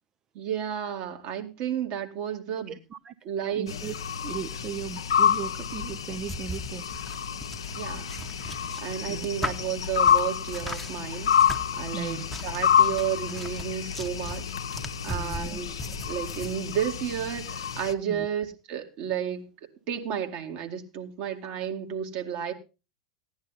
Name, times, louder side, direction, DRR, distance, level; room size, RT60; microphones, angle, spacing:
voice 1, 0.3-2.8 3.2-3.7 7.8-8.1 8.8-14.4 15.0-15.8 16.1-19.5 19.9-22.5, right 9 dB, 50° right, 4 dB, 2.1 m, -32 dB
voice 2, 2.7-3.1 3.5-3.9 4.2-6.9 9.1-9.3 11.9-12.2 15.1-15.6 18.1-18.3, right 7 dB, 30° right, 13 dB, 0.6 m, -37 dB
sound 1, 3.7-17.9, left 8 dB, 75° left, 0.8 m, -28 dB
sound 2, 5.7-16.5, left 1 dB, 5° left, 1.0 m, -39 dB
15.5 x 10.5 x 4.0 m, 0.31 s
figure-of-eight pair, 90°, 3 cm